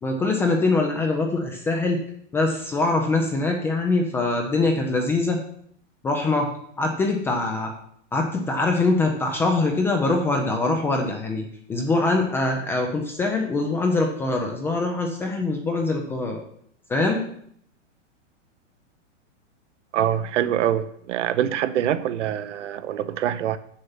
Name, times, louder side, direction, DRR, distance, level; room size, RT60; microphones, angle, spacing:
voice 1, 0.0-2.0 2.3-5.4 6.0-6.5 6.8-7.7 8.1-16.4 16.9-17.2, left 3 dB, 5° left, 2 dB, 0.3 m, -23 dB
voice 2, 19.9-23.6, right 10 dB, 70° right, 13 dB, 0.8 m, -24 dB
7.1 x 6.7 x 5.6 m, 0.66 s
hypercardioid pair, 145°, 37 cm